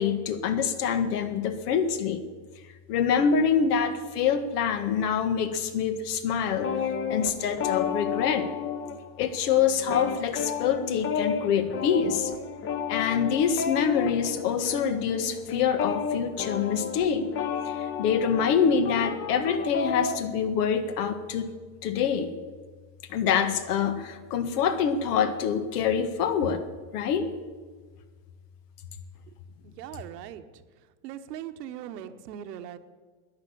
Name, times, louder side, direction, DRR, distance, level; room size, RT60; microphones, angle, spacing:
voice 1, 0.0-2.2 2.9-6.7 7.1-8.5 9.2-12.3 12.9-17.3 17.6-21.5 21.8-22.3 23.1-26.6 26.9-27.3, left 7 dB, 75° left, 10 dB, 1.7 m, -25 dB
sound 1, 6.5-9.3 9.6-20.2, left 7 dB, 25° left, 0.9 m, -32 dB
voice 2, 29.6-30.4 31.0-32.8, right 10 dB, 90° right, 9 dB, 1.2 m, -40 dB
11.5 x 10.5 x 8.6 m, 1.4 s
supercardioid pair, 150°, 47 cm